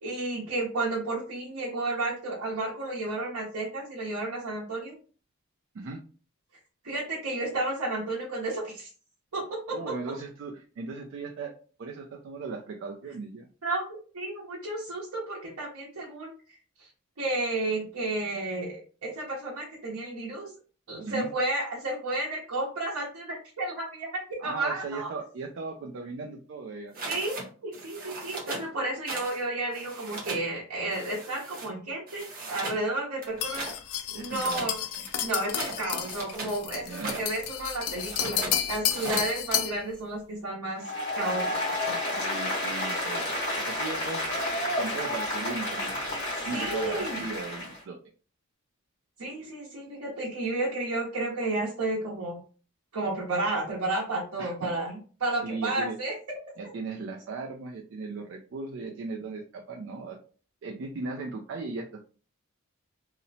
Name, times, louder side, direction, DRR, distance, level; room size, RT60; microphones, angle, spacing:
voice 1, 0.0-4.9 6.8-8.9 9.3-9.9 13.6-13.9 14.1-16.3 16.8-16.9 17.2-20.5 20.9-25.1 27.1-27.4 27.6-33.7 34.2-34.7 35.2-42.1 46.4-47.2 49.2-52.4 52.9-56.1, right 2 dB, 85° right, -5 dB, 0.8 m, -32 dB
voice 2, 9.7-11.5 11.8-13.5 21.1-21.3 24.4-26.9 34.1-34.7 35.0-35.1 36.8-37.2 42.2-44.2 44.8-46.1 46.4-48.0 54.4-54.7 55.4-56.0 56.6-60.2 60.6-61.9, right 4 dB, 55° right, 1 dB, 0.3 m, -37 dB
sound 1, 26.9-27.5 27.7-28.7 29.1-29.4 29.7-30.5 30.9-31.7 32.1-32.8 33.2-33.8 34.3-36.6 36.9-37.3 37.9-38.6 38.9-39.3, right 2 dB, 40° right, 0.8 m, -38 dB
sound 2, 33.4-39.8, left 9 dB, 80° left, 0.4 m, -31 dB
Applause, 40.8-47.8, left 1 dB, 50° left, 1.4 m, -31 dB
2.8 x 2.0 x 2.6 m, 0.39 s
head